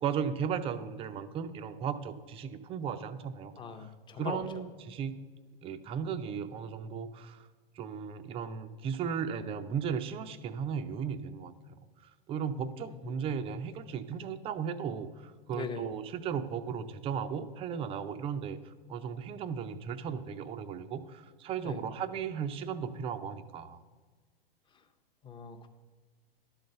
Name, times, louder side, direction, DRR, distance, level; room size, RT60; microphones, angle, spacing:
voice 1, 0.0-3.5 4.2-5.1 5.6-7.4 7.8-11.5 12.3-23.8, right 7 dB, 20° right, 10 dB, 0.4 m, -36 dB
voice 2, 3.6-4.4 12.9-13.3 15.5-15.8 21.6-21.8 25.2-25.7, left 6 dB, 15° left, 7 dB, 0.7 m, -41 dB
11.5 x 4.0 x 6.6 m, 1.4 s
hypercardioid pair, 105°, 30 cm